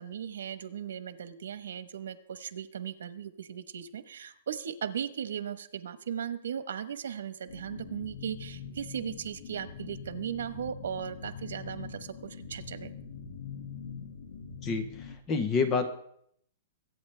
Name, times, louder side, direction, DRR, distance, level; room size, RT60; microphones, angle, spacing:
voice 1, 0.0-12.9, right 8 dB, 90° right, 13 dB, 1.1 m, -37 dB
sound 1, 7.5-15.2, left 6 dB, 80° left, 2.0 m, -43 dB
voice 2, 14.6-15.9, left 4 dB, 15° left, 9 dB, 0.8 m, -28 dB
23.0 x 8.9 x 3.3 m, 0.67 s
hypercardioid pair, 180°, 0 cm